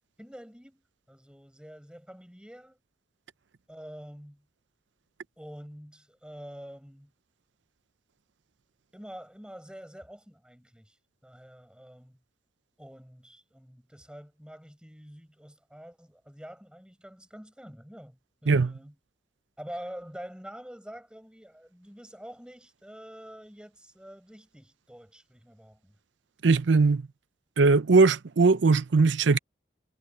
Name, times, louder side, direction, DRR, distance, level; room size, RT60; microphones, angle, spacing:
voice 1, 0.2-2.8 3.7-4.5 5.4-7.1 8.9-11.0 11.2-12.2 12.8-18.9 19.6-25.9, equal, 5° right, 6.1 m, -46 dB
voice 2, 26.4-27.0 27.6-29.4, right 4 dB, 80° right, 0.6 m, -20 dB
head